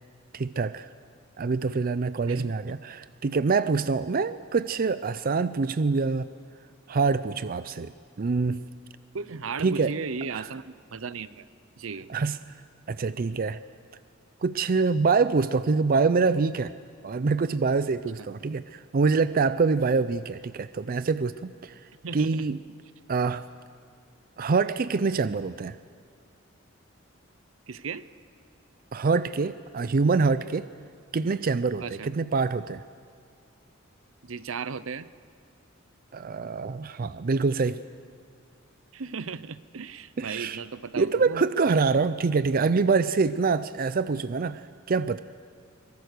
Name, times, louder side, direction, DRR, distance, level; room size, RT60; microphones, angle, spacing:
voice 1, 0.3-0.9 1.4-6.3 6.9-7.9 8.2-8.6 9.6-9.9 10.3-10.5 12.1-12.4 12.9-13.6 14.4-16.7 17.0-21.8 22.1-22.6 23.1-23.4 24.4-25.8 28.9-30.7 31.1-32.8 36.1-37.8 40.2-40.6 41.0-45.2, right 4 dB, 45° right, 14 dB, 0.5 m, -25 dB
voice 2, 9.1-11.5 11.8-12.1 22.0-22.5 27.7-28.1 31.8-32.1 34.2-35.1 38.9-41.4, right 5 dB, 80° right, 15 dB, 0.7 m, -36 dB
23.5 x 22.0 x 6.7 m, 2.2 s
head